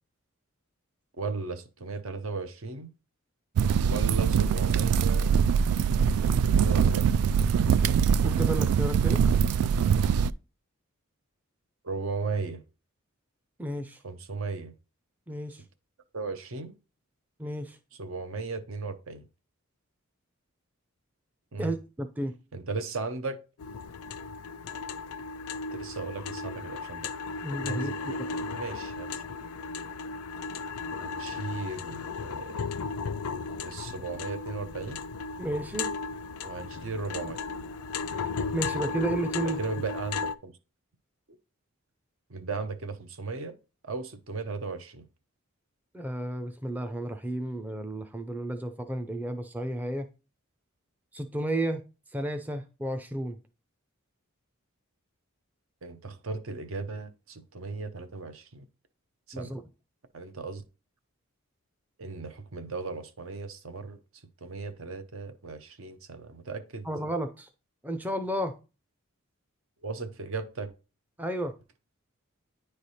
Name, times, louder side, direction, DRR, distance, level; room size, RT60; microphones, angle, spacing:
voice 1, 1.2-2.9 3.9-5.3 6.5-7.2 11.8-12.6 14.0-14.7 16.1-16.7 18.0-19.2 21.5-21.7 22.5-23.4 25.7-27.1 27.6-29.1 31.0-32.7 33.6-35.0 36.4-37.4 39.3-40.5 42.3-43.5 43.8-45.0 55.8-58.7 59.3-59.5 60.1-60.6 62.0-64.0 64.4-66.9 69.8-70.7, right 4 dB, 65° right, 0.7 m, -36 dB
sound 1, 3.6-10.3, right 7 dB, 85° right, 0.3 m, -23 dB
voice 2, 8.2-9.2 13.6-14.0 15.3-15.6 17.4-17.8 21.6-22.3 27.4-28.1 35.4-35.9 38.1-39.6 45.9-50.1 51.1-51.8 52.1-53.4 59.3-59.6 66.8-67.5 67.8-68.5 71.2-71.5, right 1 dB, 10° right, 0.4 m, -32 dB
sound 2, 23.6-40.3, left 4 dB, 85° left, 0.4 m, -35 dB
9.7 x 3.3 x 4.2 m
head